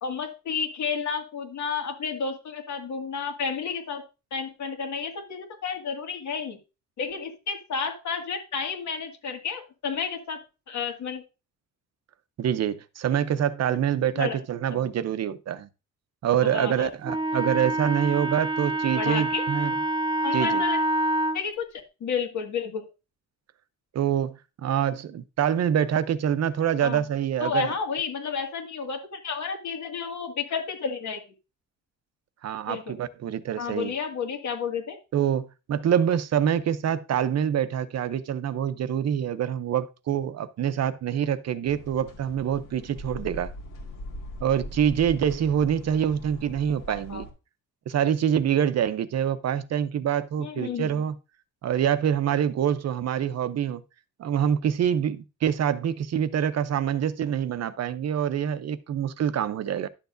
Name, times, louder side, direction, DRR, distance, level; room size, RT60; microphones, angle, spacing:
voice 1, 0.0-4.0 4.3-6.6 7.0-10.4 10.7-11.2 13.7-13.8 14.2-14.4 14.7-14.9 16.4-16.9 19.0-19.4 20.2-20.8 21.3-22.9 26.8-27.0 27.4-31.2 32.7-33.0 33.6-35.0 47.1-47.3 50.4-51.0, left 6 dB, 65° left, 2.0 m, -31 dB
voice 2, 12.4-15.7 16.2-19.7 20.3-20.6 23.9-27.7 32.4-33.9 35.1-43.5 44.4-47.2 47.9-51.1 51.6-53.8 54.2-59.9, right 9 dB, 55° right, 0.6 m, -25 dB
Wind instrument woodwind instrument, 17.0-21.4, right 1 dB, 15° right, 0.4 m, -26 dB
sound 1, 41.6-47.3, left 1 dB, 90° left, 2.2 m, -41 dB
11.5 x 7.0 x 2.6 m
cardioid pair, 145°, 31 cm